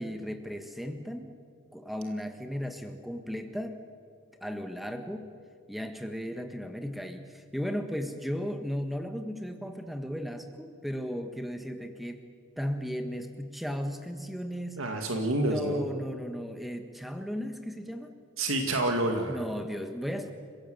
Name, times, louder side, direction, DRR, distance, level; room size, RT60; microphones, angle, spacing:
voice 1, 0.0-1.4 1.7-3.8 4.4-5.3 5.7-12.2 12.6-14.9 15.4-18.1 19.1-20.3, equal, ahead, 7 dB, 1.4 m, -35 dB
voice 2, 14.8-15.8 18.4-19.4, right 2 dB, 70° right, 3 dB, 2.2 m, -28 dB
29.5 x 16.5 x 8.0 m, 2.2 s
head